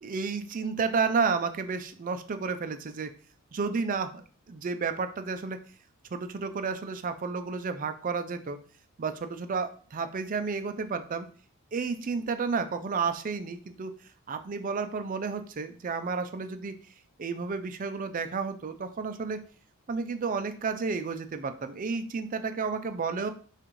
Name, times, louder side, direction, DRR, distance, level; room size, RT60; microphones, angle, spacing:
voice 1, 0.0-3.1 3.5-5.6 6.1-8.6 9.0-11.3 11.7-13.9 14.3-16.7 17.2-19.4 19.9-23.3, right 5 dB, 40° right, 9 dB, 0.4 m, -31 dB
5.9 x 2.5 x 3.1 m, 0.41 s
head